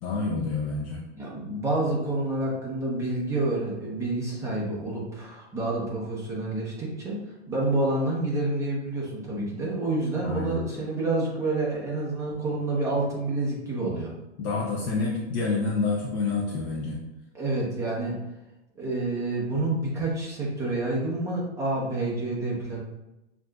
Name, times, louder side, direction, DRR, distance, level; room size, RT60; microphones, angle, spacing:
voice 1, 0.0-1.0 10.2-10.6 14.4-17.0, left 4 dB, 25° left, -4 dB, 0.4 m, -28 dB
voice 2, 1.2-7.2 7.5-14.1 17.3-18.2 18.8-22.8, right 2 dB, 10° right, -5 dB, 0.8 m, -28 dB
6.3 x 2.5 x 2.2 m, 0.96 s
hypercardioid pair, 135°, 36 cm